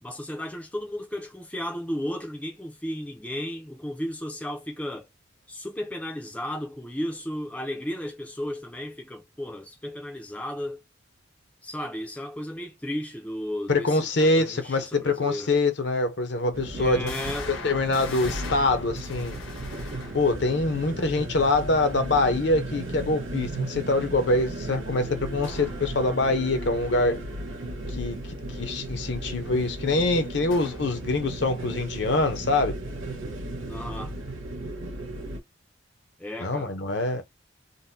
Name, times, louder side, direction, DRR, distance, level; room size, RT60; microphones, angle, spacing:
voice 1, 0.0-5.1 5.5-10.8 11.6-15.5 16.7-17.5 33.7-34.1 36.2-36.7, left 1 dB, 5° left, 0.5 m, -34 dB
voice 2, 13.7-17.1 17.6-19.4 20.1-27.2 27.9-28.2 28.6-32.8 36.4-37.2, left 2 dB, 60° left, 0.7 m, -24 dB
sound 1, 15.4-15.5 16.1-16.2 17.1-20.5 25.4-25.8 30.5-31.0, left 4 dB, 80° left, 1.1 m, -41 dB
sound 2, 16.5-35.4, right 1 dB, 80° right, 1.1 m, -35 dB
3.9 x 2.2 x 2.6 m
head